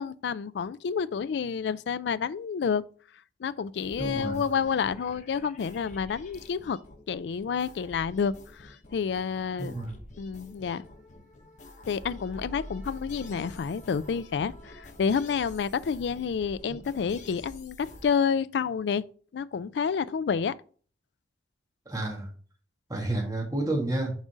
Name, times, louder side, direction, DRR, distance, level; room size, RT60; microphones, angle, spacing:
voice 1, 0.0-2.8 3.4-6.8 7.1-9.7 10.2-10.8 11.9-19.0 19.3-20.5, left 6 dB, 70° left, 0.3 m, -29 dB
sound 1, 3.8-18.1, left 1 dB, 45° left, 1.0 m, -47 dB
voice 2, 4.0-4.4 9.6-10.0 16.7-16.8 21.9-22.3 22.9-24.1, right 2 dB, 20° right, 1.9 m, -30 dB
6.1 x 3.9 x 5.0 m
head